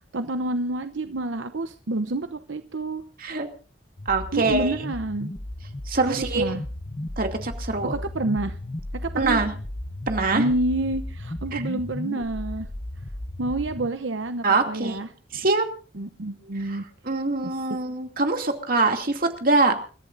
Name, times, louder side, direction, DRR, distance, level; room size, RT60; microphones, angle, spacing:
voice 1, 0.1-3.0 4.3-5.3 6.1-6.6 7.8-8.6 9.0-9.4 10.3-12.7 13.4-15.1 15.9-16.9, right 2 dB, 85° right, 9 dB, 0.9 m, -28 dB
sound 1, 4.0-13.9, left 1 dB, 30° left, 1.0 m, -35 dB
voice 2, 4.1-4.7 5.9-6.5 7.2-7.9 9.2-9.5 10.1-10.5 11.5-11.6 14.4-15.0 15.3-15.6 16.7-16.8 17.0-19.8, right 3 dB, 50° right, 4 dB, 2.6 m, -23 dB
29.0 x 14.0 x 2.6 m, 0.39 s
head